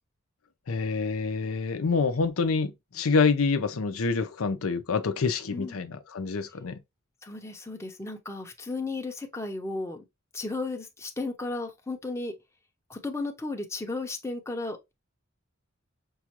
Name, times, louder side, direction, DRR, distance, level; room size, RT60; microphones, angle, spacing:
voice 1, 0.7-6.8, left 4 dB, 85° left, 0.6 m, -27 dB
voice 2, 5.5-5.8 7.2-10.0 10.3-12.3 12.9-14.9, left 3 dB, 15° left, 0.7 m, -34 dB
5.5 x 2.4 x 2.9 m
head